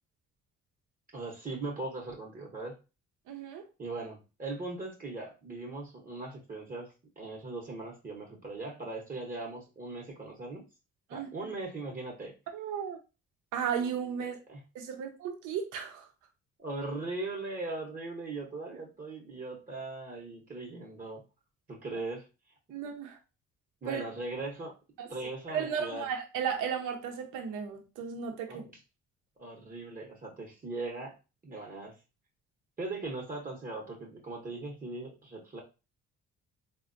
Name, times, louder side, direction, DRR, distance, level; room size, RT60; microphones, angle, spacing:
voice 1, 1.1-2.8 3.8-10.6 11.1-12.3 14.5-14.6 16.6-21.2 21.7-22.3 23.8-24.7 25.1-26.1 28.5-28.8 29.4-31.1 31.4-31.9 32.8-35.6, right 2 dB, 30° right, 0.8 m, -39 dB
voice 2, 3.3-3.6 11.1-11.5 12.5-13.0 13.5-14.4 14.7-16.1 22.7-23.2 23.9-24.0 25.0-25.1 25.5-28.6, right 7 dB, 85° right, 0.7 m, -35 dB
3.3 x 2.1 x 2.5 m
cardioid pair, 90°, 30 cm